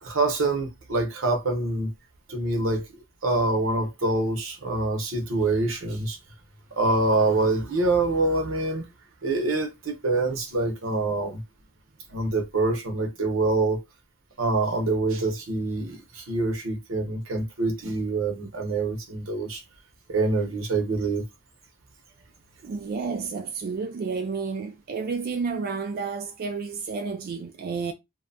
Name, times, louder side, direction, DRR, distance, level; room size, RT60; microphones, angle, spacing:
voice 1, 0.0-1.9 2.3-2.8 3.2-6.2 6.8-8.9 9.2-11.4 12.1-13.8 14.4-19.6 20.1-21.2, right 2 dB, 75° right, 0.8 m, -25 dB
voice 2, 22.6-27.9, right 5 dB, 45° right, 0.3 m, -31 dB
2.7 x 2.2 x 2.6 m
head